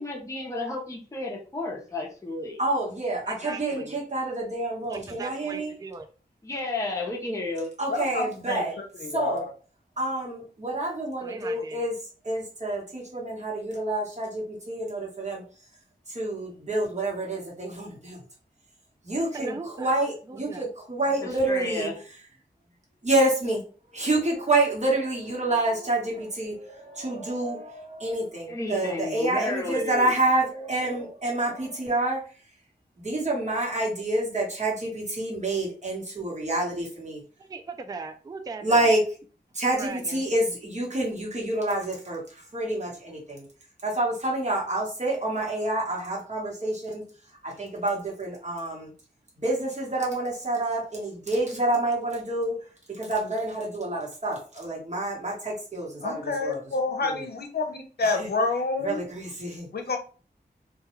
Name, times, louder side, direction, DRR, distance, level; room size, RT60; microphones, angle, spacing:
voice 1, 0.0-2.6 6.5-7.7 21.0-22.0 28.5-30.2, left 2 dB, 15° left, -2 dB, 0.6 m, -32 dB
voice 2, 2.6-5.7 7.8-8.7 9.1-9.4 10.0-11.9 12.2-15.4 16.1-18.2 19.0-21.9 23.0-23.6 23.9-32.2 33.0-37.2 38.6-39.1 39.5-42.2 42.5-43.5 43.8-47.1 47.4-48.9 49.4-52.6 52.9-56.6 58.8-59.7, right 2 dB, 40° right, -3 dB, 1.2 m, -28 dB
voice 3, 3.3-4.0 4.9-6.1 11.2-11.8 19.1-20.0 20.3-20.7 37.4-38.9 39.7-40.2, right 4 dB, 20° right, 7 dB, 0.3 m, -39 dB
voice 4, 7.9-9.5 56.0-59.0 59.7-60.0, left 3 dB, 65° left, 4 dB, 0.6 m, -28 dB
2.3 x 2.2 x 3.0 m, 0.37 s
wide cardioid pair, 70°, 18 cm